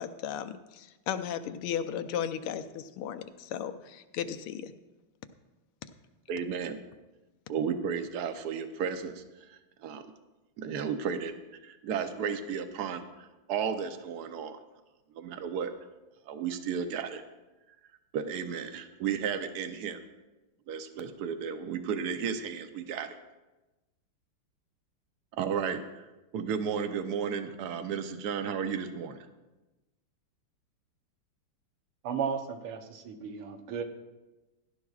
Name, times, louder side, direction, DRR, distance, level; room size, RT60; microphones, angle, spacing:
voice 1, 0.0-4.7, left 9 dB, 90° left, 10 dB, 1.6 m, -35 dB
voice 2, 6.3-6.8 7.5-9.2 9.8-10.0 10.6-11.3 11.6-14.6 15.2-15.7 16.3-17.2 18.1-20.0 20.7-23.2 25.4-25.8 26.3-29.2, right 7 dB, 65° right, 8 dB, 1.1 m, -33 dB
voice 3, 32.0-33.8, right 7 dB, 80° right, 5 dB, 1.9 m, -34 dB
17.0 x 11.5 x 2.4 m, 1.1 s
omnidirectional pair, 2.4 m